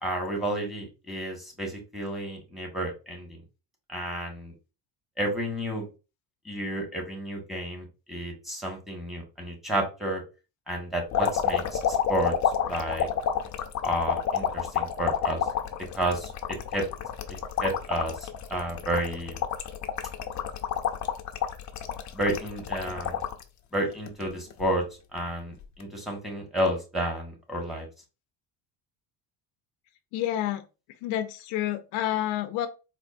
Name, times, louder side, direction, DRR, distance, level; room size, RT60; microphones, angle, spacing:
voice 1, 0.0-3.4 3.9-4.5 5.2-5.9 6.4-10.2 10.7-12.3 12.7-13.1 13.8-15.4 15.9-16.3 16.7-16.8 17.6-19.4 22.1-23.2 23.7-24.8 25.1-27.9, right 1 dB, ahead, 1.6 m, -31 dB
sound 1, 11.1-23.4 23.9-24.7 25.6-25.8, left 8 dB, 40° left, 0.6 m, -29 dB
voice 2, 30.1-30.6 31.0-32.7, left 12 dB, 80° left, 0.6 m, -29 dB
4.3 x 2.6 x 2.5 m
supercardioid pair, 95°, 47 cm